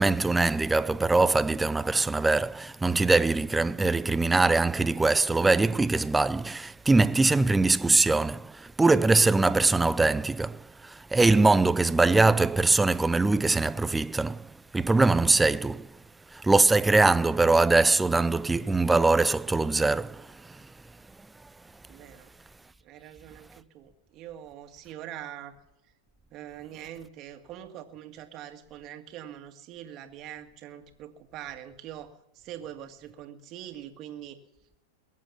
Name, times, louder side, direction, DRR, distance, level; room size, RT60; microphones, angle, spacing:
voice 1, 0.0-14.5 14.7-15.9 16.3-20.3, right 3 dB, 10° right, 0.4 m, -22 dB
voice 2, 21.9-22.3 22.8-25.5 26.3-34.4, right 11 dB, 40° right, 1.9 m, -43 dB
22.0 x 7.5 x 7.1 m
hypercardioid pair, 115°, 0 cm